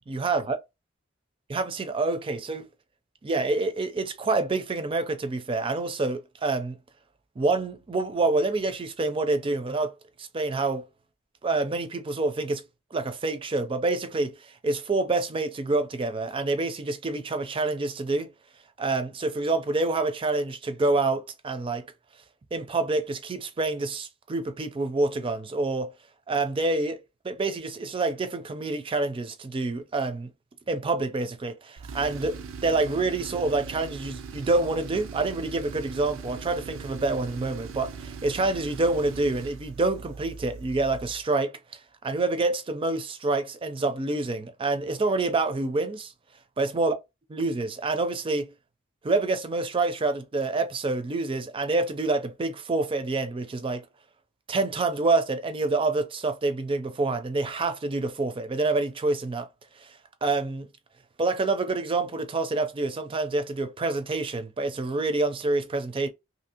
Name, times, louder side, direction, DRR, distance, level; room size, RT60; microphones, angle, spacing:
voice 1, 0.1-0.6 1.5-2.7 3.2-6.8 7.4-10.8 11.4-12.7 12.9-18.3 18.8-21.9 22.5-25.9 26.3-30.3 30.7-41.6 42.0-46.1 46.6-46.9 47.3-48.5 49.0-53.9 54.5-59.5 59.8-59.9 60.2-60.7 61.2-66.1, right 3 dB, 25° right, 0.4 m, -27 dB
Tools, 31.8-41.2, right 5 dB, 85° right, 0.4 m, -40 dB
2.7 x 2.6 x 2.8 m
head